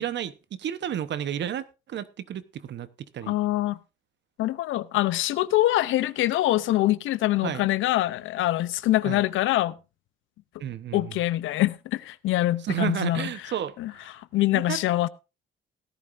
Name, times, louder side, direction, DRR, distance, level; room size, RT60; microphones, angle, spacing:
voice 1, 0.0-2.9 3.1-3.4 7.4-7.7 9.0-9.2 10.6-11.2 12.6-14.1 14.5-14.8, right 10 dB, 65° right, 1.0 m, -32 dB
voice 2, 3.3-3.8 4.4-9.7 10.9-13.3 13.8-15.1, left 15 dB, 85° left, 0.7 m, -24 dB
17.0 x 11.0 x 2.6 m
cardioid pair, 90°, 20 cm